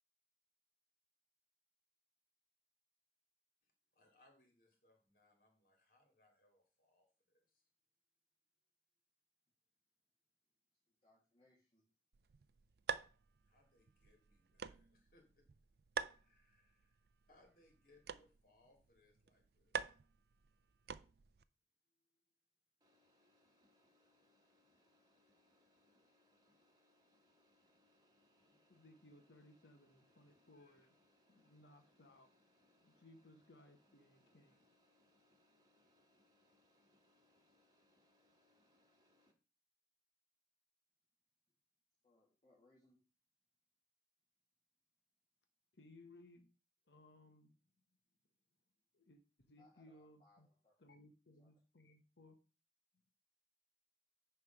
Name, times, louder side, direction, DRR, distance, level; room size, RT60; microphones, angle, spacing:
voice 1, 3.6-7.1 13.4-15.5 16.2-17.0 17.3-19.9 28.4-28.6 30.5-30.9, left 2 dB, 50° left, 2 dB, 2.8 m, -72 dB
voice 2, 10.9-11.8 42.0-43.0 49.6-50.9 51.4-51.5, left 2 dB, 30° left, -5 dB, 2.1 m, -72 dB
sound 1, 12.1-21.4, right 6 dB, 60° right, 0.4 m, -48 dB
sound 2, 22.8-39.3, left 1 dB, 20° right, 1.5 m, -75 dB
voice 3, 28.7-31.0 31.3-32.3 32.7-34.7 45.7-46.5 46.9-47.5 48.9-50.5 50.8-52.3, left 1 dB, 80° left, 5 dB, 1.1 m, -63 dB
9.8 x 3.5 x 5.9 m, 0.33 s
head